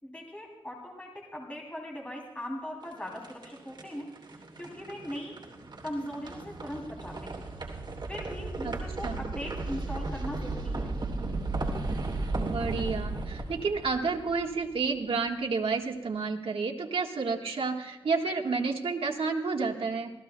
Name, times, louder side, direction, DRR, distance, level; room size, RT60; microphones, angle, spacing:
voice 1, 0.0-4.1 4.6-5.4 5.8-7.4 8.1-10.9, equal, 15° left, -1 dB, 3.0 m, -39 dB
sound 1, 2.8-14.9, right 2 dB, 50° right, 2.8 m, -35 dB
voice 2, 12.4-20.1, right 4 dB, 70° right, 2 dB, 1.5 m, -30 dB
26.5 x 17.0 x 2.2 m, 1.0 s
wide cardioid pair, 145°, 10 cm